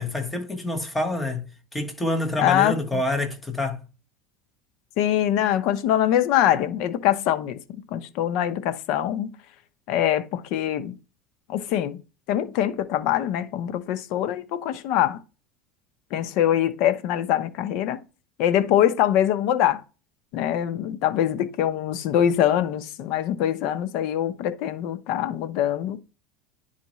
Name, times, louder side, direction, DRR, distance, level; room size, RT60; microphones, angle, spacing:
voice 1, 0.0-3.8, left 1 dB, 10° left, 1.3 m, -27 dB
voice 2, 2.4-3.0 5.0-7.6 7.9-9.3 9.9-11.0 11.5-12.0 12.3-15.2 16.1-18.0 18.4-19.8 20.3-26.0, left 11 dB, 60° left, 0.9 m, -23 dB
10.5 x 4.2 x 3.1 m
supercardioid pair, 145°, 0 cm